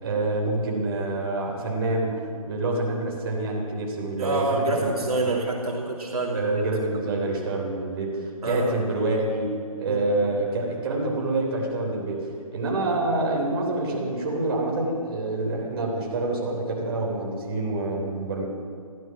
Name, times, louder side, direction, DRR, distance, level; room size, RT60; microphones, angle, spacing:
voice 1, 0.0-5.0 5.3-5.4 6.3-9.5 9.8-18.5, right 2 dB, 40° right, -1 dB, 3.5 m, -27 dB
voice 2, 4.2-6.5 8.4-8.7 9.9-10.3 12.9-13.0, right 2 dB, 80° right, -2 dB, 3.0 m, -27 dB
13.5 x 13.5 x 6.0 m, 2.1 s
figure-of-eight pair, 155°, 19 cm